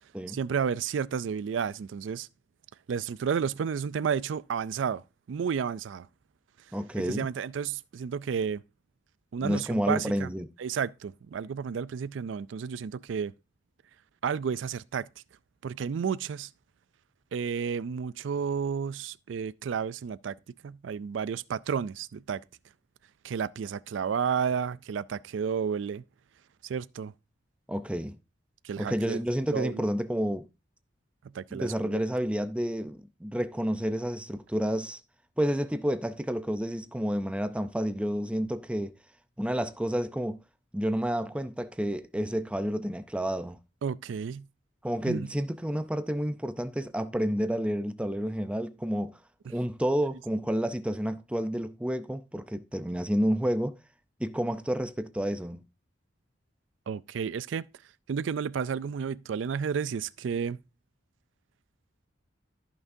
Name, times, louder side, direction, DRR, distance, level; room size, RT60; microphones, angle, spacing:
voice 1, 0.3-2.3 2.9-5.0 5.3-6.1 7.0-8.6 9.3-10.3 10.6-13.3 14.2-15.1 15.6-16.5 17.3-20.4 20.6-22.4 23.2-26.0 26.6-27.1 28.6-29.2 29.5-29.8 31.3-32.0 43.8-44.4 45.1-45.3 56.9-57.6 58.1-60.6, right 6 dB, 75° right, 0.4 m, -31 dB
voice 2, 6.7-7.3 9.4-10.5 27.7-28.2 28.8-30.5 31.5-35.0 35.4-38.9 39.4-40.4 40.7-43.6 44.8-49.2 49.5-53.8 54.2-55.6, equal, 5° right, 0.5 m, -30 dB
14.5 x 6.0 x 2.7 m
head